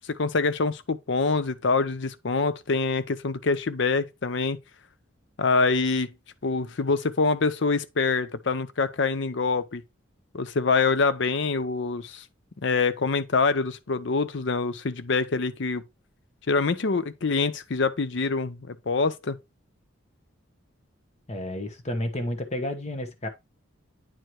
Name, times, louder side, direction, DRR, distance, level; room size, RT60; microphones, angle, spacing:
voice 1, 0.0-4.6 5.4-6.1 6.4-9.8 10.3-12.2 12.6-15.8 16.5-19.4, left 4 dB, 60° left, 0.6 m, -25 dB
voice 2, 21.3-23.3, left 1 dB, 30° left, 1.0 m, -31 dB
9.0 x 4.6 x 3.1 m
head